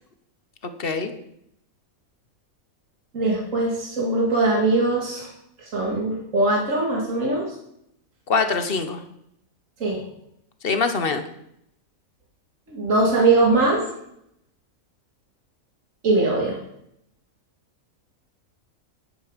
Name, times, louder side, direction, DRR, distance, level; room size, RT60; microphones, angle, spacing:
voice 1, 0.6-1.1 8.3-9.0 10.6-11.2, left 4 dB, 45° left, 8 dB, 1.3 m, -24 dB
voice 2, 3.1-5.3 5.7-7.5 9.8-10.0 12.7-13.8 16.0-16.6, right 2 dB, 70° right, -3 dB, 2.5 m, -21 dB
10.5 x 9.8 x 5.2 m, 0.76 s
omnidirectional pair, 1.4 m